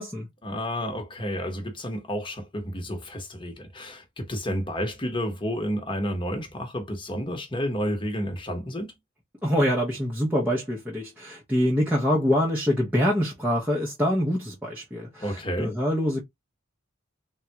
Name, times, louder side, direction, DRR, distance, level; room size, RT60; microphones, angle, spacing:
voice 1, 0.4-8.9 15.2-15.7, equal, 25° left, 1.0 m, -31 dB
voice 2, 9.4-16.2, equal, 10° right, 0.7 m, -25 dB
3.6 x 2.2 x 2.8 m
head